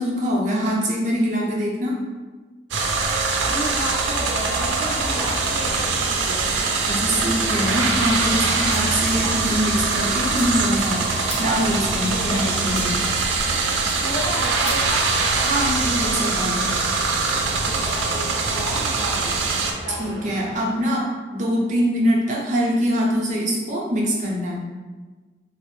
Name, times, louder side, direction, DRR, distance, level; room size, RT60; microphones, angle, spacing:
voice 1, 0.0-2.0 6.9-13.0 15.4-16.7 19.9-24.6, equal, 40° right, -4 dB, 0.6 m, -23 dB
sound 1, 2.7-19.7, right 4 dB, 90° right, 0.5 m, -23 dB
voice 2, 3.4-6.5 9.2-9.4 12.1-12.5 14.0-15.1 17.7-19.4 19.8-20.3, equal, 60° left, -5 dB, 0.9 m, -32 dB
sound 2, 5.1-20.6, equal, 10° right, 0.9 m, -38 dB
sound 3, 8.2-15.5, left 1 dB, 35° left, 0.7 m, -41 dB
4.0 x 2.0 x 3.1 m, 1.3 s
head